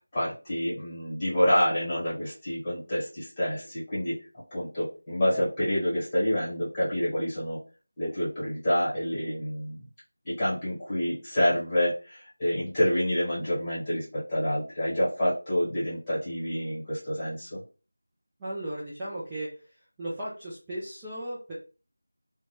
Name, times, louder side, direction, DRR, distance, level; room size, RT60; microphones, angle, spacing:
voice 1, 0.1-4.2 4.5-7.6 8.0-9.8 10.2-17.6, equal, 10° left, -9 dB, 1.3 m, -28 dB
voice 2, 18.4-19.6 20.0-21.5, right 1 dB, 10° right, -10 dB, 0.4 m, -36 dB
2.6 x 2.1 x 3.1 m, 0.34 s
figure-of-eight pair, 175°, 0 cm